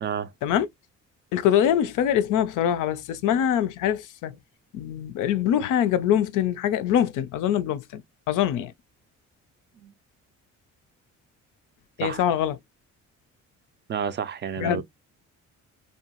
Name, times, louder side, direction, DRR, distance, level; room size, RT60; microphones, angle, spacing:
voice 1, 0.0-0.3 9.8-9.9 12.0-12.2 13.9-14.8, right 7 dB, 35° right, 0.4 m, -30 dB
voice 2, 1.3-4.4 4.7-8.0 8.3-8.7 12.0-12.6 14.6-14.8, left 10 dB, 85° left, 0.5 m, -24 dB
2.7 x 2.3 x 2.8 m
cardioid pair, 90°, 30 cm